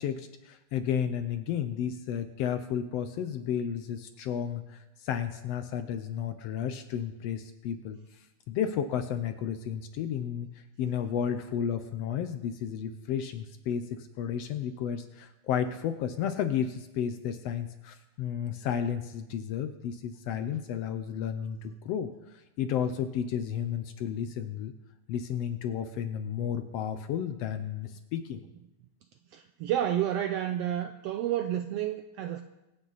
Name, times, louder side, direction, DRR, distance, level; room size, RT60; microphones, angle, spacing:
voice 1, 0.0-8.0 8.5-10.5 10.8-24.7 25.1-28.4, left 8 dB, 75° left, 9 dB, 1.6 m, -32 dB
voice 2, 29.3-32.4, right 11 dB, 85° right, 8 dB, 1.4 m, -30 dB
23.0 x 8.9 x 4.1 m, 0.97 s
omnidirectional pair, 3.3 m